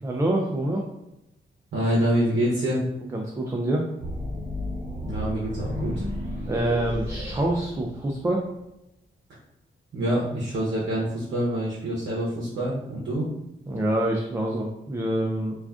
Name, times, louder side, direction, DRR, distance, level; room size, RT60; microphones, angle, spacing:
voice 1, 0.0-0.8 3.1-3.8 6.5-8.4 13.7-15.5, right 1 dB, 15° right, 0 dB, 0.3 m, -26 dB
voice 2, 1.7-2.9 5.0-6.0 9.9-13.3, right 1 dB, 65° right, -6 dB, 0.7 m, -26 dB
sound 1, 4.0-8.3, left 1 dB, 45° right, 1.2 m, -32 dB
2.4 x 2.3 x 3.5 m, 0.90 s
cardioid pair, 85°, 20 cm